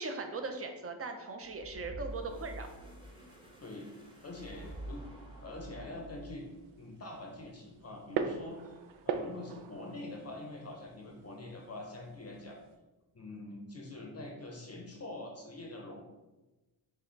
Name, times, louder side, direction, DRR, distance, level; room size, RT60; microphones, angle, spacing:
voice 1, 0.0-2.7, right 3 dB, 30° right, 6 dB, 0.5 m, -39 dB
sound 1, 1.4-6.6, right 1 dB, 10° right, 0.9 m, -47 dB
sound 2, 2.8-12.8, right 6 dB, 80° right, 0.5 m, -43 dB
voice 2, 4.2-5.0 5.4-6.4 6.8-8.8 9.0-12.6 13.1-16.0, left 2 dB, 30° left, 1 dB, 0.7 m, -45 dB
5.5 x 2.2 x 3.8 m, 1.1 s
cardioid pair, 105°, 49 cm